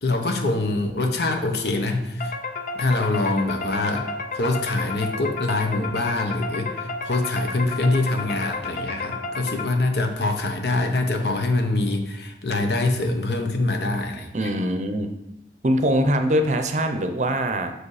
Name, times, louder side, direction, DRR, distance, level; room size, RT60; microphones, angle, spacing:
voice 1, 0.0-2.3 2.7-14.5, left 2 dB, 70° left, 4 dB, 1.0 m, -24 dB
sound 1, 2.2-10.1, left 3 dB, 45° left, 0.5 m, -32 dB
voice 2, 14.3-15.1 15.6-17.7, equal, 40° right, 7 dB, 0.6 m, -22 dB
6.3 x 5.0 x 4.8 m, 0.86 s
head